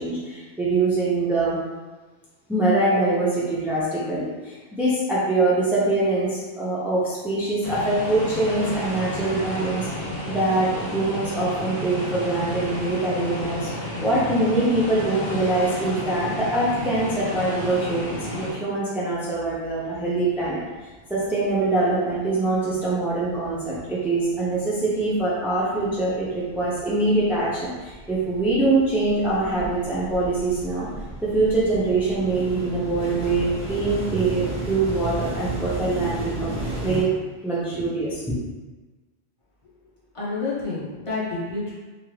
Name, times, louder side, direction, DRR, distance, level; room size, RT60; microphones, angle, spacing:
voice 1, 0.0-1.6 2.5-20.6 21.1-30.9 31.2-37.1 37.4-38.3, right 2 dB, 5° right, -8 dB, 0.3 m, -24 dB
sound 1, 7.6-18.5, left 1 dB, 65° left, 1.4 m, -31 dB
sound 2, 20.4-20.5 20.7-21.7 22.0-37.0, right 2 dB, 30° right, 1.0 m, -34 dB
voice 2, 40.1-41.7, left 3 dB, 30° left, -8 dB, 0.9 m, -29 dB
3.0 x 2.5 x 3.2 m, 1.3 s
omnidirectional pair, 1.1 m